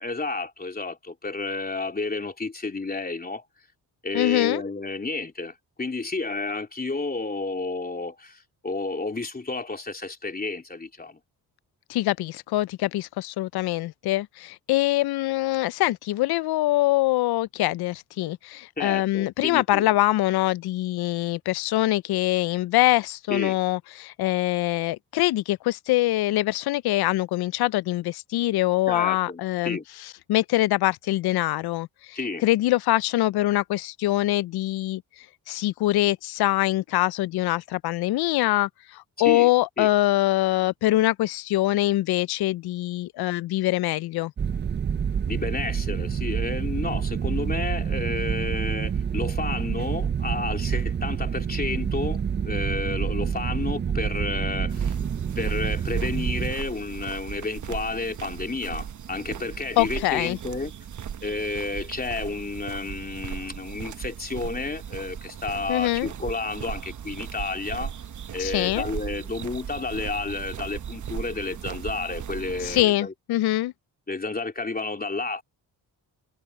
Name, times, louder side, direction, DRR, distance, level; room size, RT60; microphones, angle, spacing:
voice 1, 0.0-3.4 4.0-11.2 18.8-19.9 23.3-23.6 28.9-29.8 32.1-32.4 39.2-39.5 39.8-39.9 45.3-54.9 55.3-60.7 61.2-67.9 68.3-73.1 74.1-75.4, left 3 dB, 25° left, 3.4 m, -31 dB
voice 2, 4.1-4.6 11.9-29.8 30.3-35.0 35.5-44.3 59.8-60.4 65.7-66.1 68.4-68.9 72.6-73.7, left 16 dB, 70° left, 0.5 m, -24 dB
sound 1, 44.4-56.5, right 7 dB, 30° right, 0.5 m, -27 dB
sound 2, 54.7-72.8, right 8 dB, 50° right, 1.1 m, -37 dB
cardioid pair, 85°, 39 cm